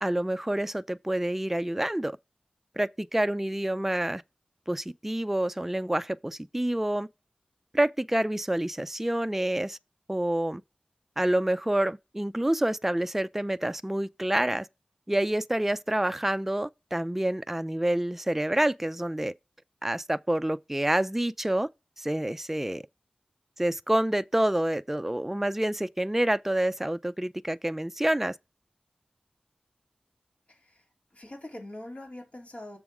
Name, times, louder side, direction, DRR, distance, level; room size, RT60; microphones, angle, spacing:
voice 1, 0.0-2.2 2.8-4.2 4.7-7.1 7.7-9.8 10.1-10.6 11.2-14.7 15.1-19.3 19.8-21.7 22.0-22.8 23.6-28.4, right 1 dB, 10° right, 0.3 m, -27 dB
voice 2, 30.5-32.8, left 1 dB, 55° left, 3.3 m, -43 dB
7.1 x 3.5 x 5.9 m
wide cardioid pair, 55°, 3 cm